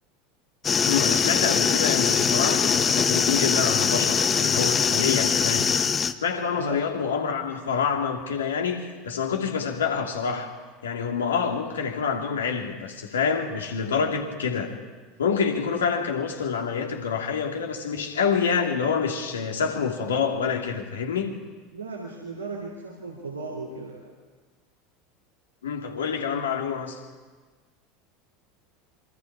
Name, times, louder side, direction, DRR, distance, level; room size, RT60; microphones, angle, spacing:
sound 1, 0.6-6.1, left 6 dB, 25° left, 1.0 m, -22 dB
voice 1, 0.9-5.7 6.2-10.5 10.8-14.8 15.2-21.4 25.6-27.0, left 6 dB, 75° left, 2 dB, 2.6 m, -27 dB
voice 2, 21.7-24.1, right 3 dB, 85° right, -3 dB, 3.0 m, -36 dB
26.5 x 24.5 x 4.8 m, 1.4 s
figure-of-eight pair, 75°, 0 cm